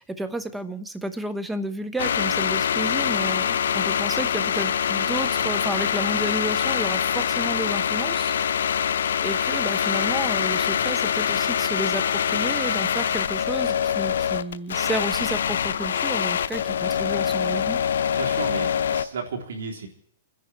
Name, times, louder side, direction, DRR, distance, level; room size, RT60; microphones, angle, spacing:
voice 1, 0.0-8.3 9.2-17.8, right 1 dB, 5° right, 12 dB, 0.9 m, -31 dB
sound 1, 2.0-19.0, left 8 dB, 80° left, 0.7 m, -24 dB
voice 2, 18.1-19.9, right 4 dB, 85° right, 1 dB, 3.7 m, -33 dB
27.5 x 10.5 x 4.6 m, 0.65 s
hypercardioid pair, 150°, 0 cm